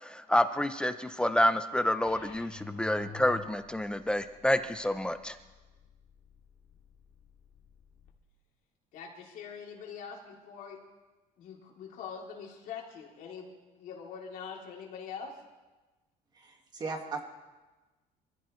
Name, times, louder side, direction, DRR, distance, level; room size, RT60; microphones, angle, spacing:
voice 1, 0.0-5.4, left 1 dB, 5° left, 9 dB, 0.5 m, -28 dB
sound 1, 2.1-8.1, left 5 dB, 85° left, 2.6 m, -50 dB
voice 2, 8.9-10.8 11.4-13.5 13.8-15.3, left 6 dB, 60° left, -1 dB, 3.0 m, -43 dB
voice 3, 16.3-17.2, right 4 dB, 25° right, 4 dB, 1.8 m, -37 dB
26.0 x 15.0 x 3.2 m, 1.2 s
cardioid pair, 165°, 16 cm